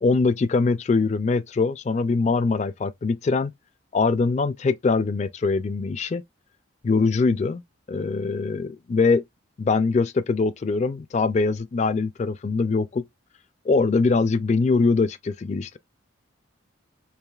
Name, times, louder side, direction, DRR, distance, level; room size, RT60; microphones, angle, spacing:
voice 1, 0.0-3.5 3.9-6.2 6.8-7.6 7.9-9.2 9.6-13.0 13.7-15.8, left 4 dB, 35° left, 0.3 m, -22 dB
4.7 x 2.8 x 2.3 m
head